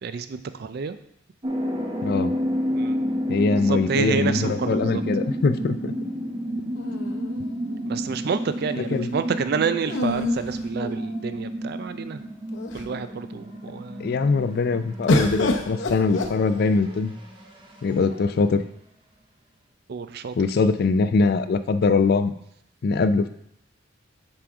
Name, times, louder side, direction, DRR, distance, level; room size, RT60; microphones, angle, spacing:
voice 1, 0.0-1.0 2.7-3.0 3.6-5.0 7.8-12.2 12.7-14.2 19.9-20.3, right 5 dB, 55° right, 11 dB, 0.4 m, -29 dB
sound 1, 1.4-17.5, equal, 25° right, 0.9 m, -30 dB
voice 2, 2.0-2.3 3.3-5.9 8.8-9.1 14.0-17.1 17.8-18.6 20.4-22.3 22.8-23.3, left 4 dB, 55° left, 12 dB, 0.4 m, -22 dB
sound 2, 6.8-7.9 9.8-11.4 12.1-12.2 12.5-13.1 15.1-17.0 17.9-18.6, left 2 dB, 75° left, 0.8 m, -28 dB
6.0 x 5.0 x 4.8 m, 0.74 s
head